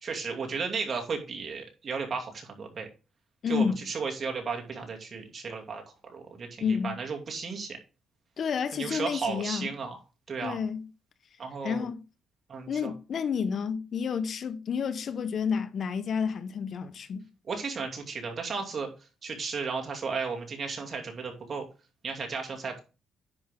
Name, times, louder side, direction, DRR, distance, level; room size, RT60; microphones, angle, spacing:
voice 1, 0.0-2.9 3.5-5.8 6.1-7.8 8.7-10.0 10.3-10.6 11.4-11.8 12.5-12.9 17.5-18.9 19.2-21.7 22.0-22.8, right 5 dB, 45° right, 2.6 m, -34 dB
voice 2, 3.4-3.8 6.6-7.0 8.4-9.7 10.4-10.8 11.6-12.0 12.7-17.2, left 6 dB, 55° left, 0.9 m, -30 dB
10.0 x 5.5 x 3.7 m
cardioid pair, 90°, 0 cm